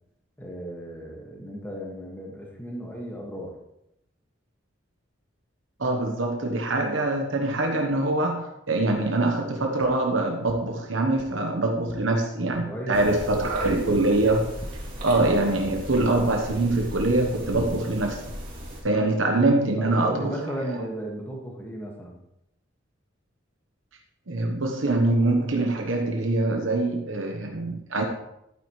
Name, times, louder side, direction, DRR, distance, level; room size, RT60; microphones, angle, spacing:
voice 1, 0.4-3.5 12.6-13.8 19.8-22.2, right 1 dB, 10° left, -1 dB, 1.8 m, -35 dB
voice 2, 5.8-14.5 15.0-18.2 18.8-20.3 24.3-28.0, right 2 dB, 80° right, 2 dB, 1.1 m, -24 dB
sound 1, 9.8-9.9 10.4-10.6 11.1-11.3 11.8-12.0 12.5-12.6 13.2-13.3 13.9-14.0 14.4-14.7, equal, 25° left, 1.2 m, -43 dB
sound 2, 12.9-18.8, equal, 45° right, 3.6 m, -37 dB
11.5 x 8.9 x 3.2 m, 0.83 s
head